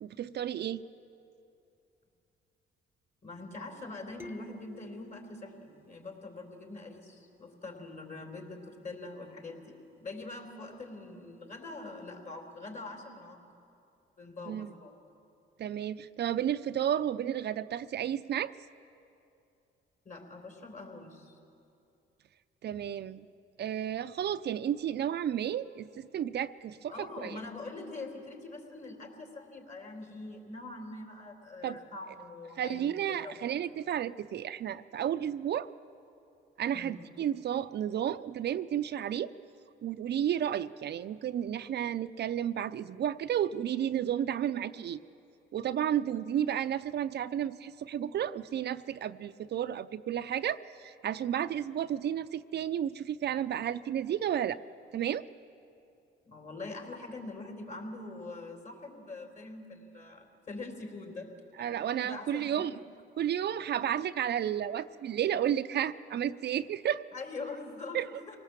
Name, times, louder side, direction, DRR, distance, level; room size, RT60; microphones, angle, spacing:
voice 1, 0.0-0.8 14.5-14.7 15.6-18.5 22.6-23.3 23.6-27.4 31.6-31.8 32.6-35.7 36.6-39.3 39.8-45.0 45.5-54.6 54.9-55.2 61.6-62.7 63.2-67.0 67.9-68.1, right 10 dB, 60° right, 11 dB, 0.5 m, -32 dB
voice 2, 3.2-13.4 14.2-15.0 20.0-21.4 22.7-22.9 26.9-33.6 36.7-37.0 56.2-61.7 62.0-62.8 67.1-68.4, left 3 dB, 40° left, 3 dB, 4.0 m, -44 dB
sound 1, 4.2-6.8, equal, 10° right, 1.0 m, -52 dB
25.5 x 18.5 x 7.4 m, 2.6 s
cardioid pair, 90°, 20 cm